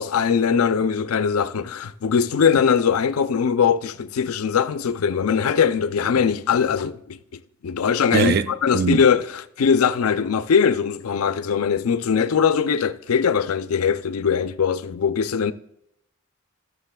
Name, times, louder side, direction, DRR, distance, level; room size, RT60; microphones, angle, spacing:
voice 1, 0.0-7.2 7.6-15.5, left 6 dB, 90° left, 0.4 m, -21 dB
voice 2, 8.1-9.0, right 5 dB, 45° right, 0.3 m, -22 dB
15.0 x 6.3 x 2.3 m
head